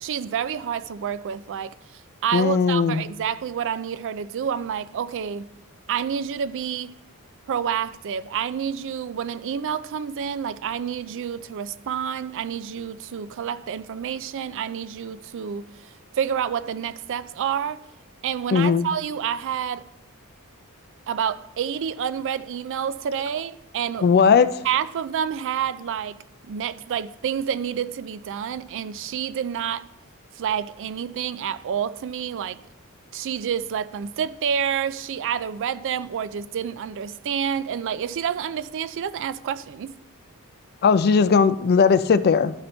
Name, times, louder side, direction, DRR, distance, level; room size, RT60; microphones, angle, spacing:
voice 1, 0.0-5.5 5.9-6.9 7.5-17.8 18.2-19.8 21.1-24.1 24.6-29.8 30.4-32.6 33.1-40.0, right 8 dB, 60° right, 0.3 m, -28 dB
voice 2, 2.3-3.0 18.5-18.8 24.0-24.5 40.8-42.5, left 5 dB, 45° left, 0.4 m, -18 dB
12.0 x 4.2 x 4.3 m
head